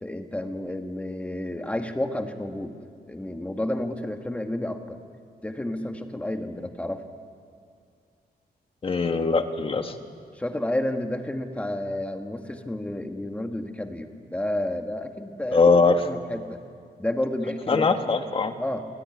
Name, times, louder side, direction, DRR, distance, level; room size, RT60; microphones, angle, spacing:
voice 1, 0.0-2.8 3.1-5.0 5.4-7.0 10.3-15.6 16.0-16.6 17.0-18.2 18.6-18.8, left 1 dB, 10° left, 5 dB, 1.5 m, -30 dB
voice 2, 8.8-9.9 15.5-16.0 17.7-18.5, left 4 dB, 35° left, 7 dB, 1.5 m, -21 dB
28.5 x 20.0 x 9.7 m, 2.3 s
wide cardioid pair, 175°, 16 cm